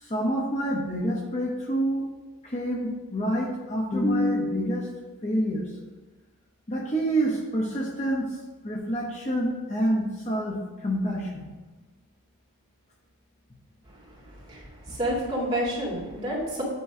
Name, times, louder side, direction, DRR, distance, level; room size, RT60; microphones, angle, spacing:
voice 1, 0.0-2.0 2.4-4.9 5.2-5.7 6.7-8.3 8.6-10.6 10.8-11.5, equal, 30° left, -2 dB, 1.0 m, -27 dB
voice 2, 14.5-16.6, equal, 30° right, -6 dB, 2.2 m, -29 dB
8.5 x 3.1 x 6.0 m, 1.2 s
head